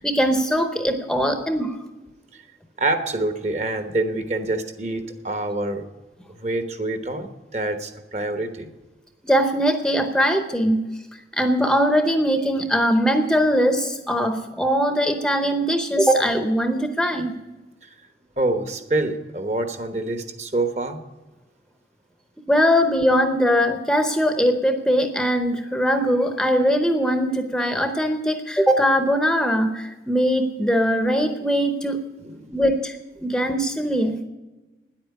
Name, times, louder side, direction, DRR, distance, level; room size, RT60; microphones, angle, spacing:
voice 1, 0.0-1.8 9.2-10.8 11.3-17.3 22.5-32.0 32.5-33.0 33.2-34.2, equal, 5° left, 6 dB, 0.7 m, -21 dB
voice 2, 2.8-5.8 6.4-8.7 17.8-17.9 18.4-21.0 32.2-32.6 33.3-33.4, right 2 dB, 40° right, 8 dB, 1.1 m, -26 dB
10.0 x 8.7 x 9.4 m, 1.1 s
head